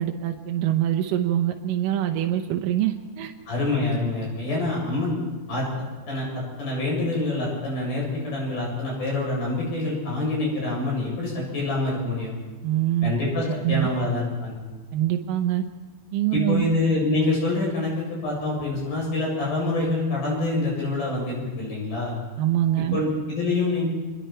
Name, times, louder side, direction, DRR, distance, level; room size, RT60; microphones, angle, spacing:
voice 1, 0.0-3.3 12.6-13.1 13.6-13.9 14.9-15.6 16.1-16.7 22.4-23.0, right 12 dB, 75° right, 4 dB, 2.0 m, -24 dB
voice 2, 3.5-5.2 5.5-5.7 6.1-6.3 6.6-12.3 13.0-14.6 16.3-22.1 22.9-23.8, left 2 dB, 55° left, -4 dB, 9.6 m, -26 dB
27.0 x 21.5 x 4.5 m, 1.3 s
omnidirectional pair, 5.0 m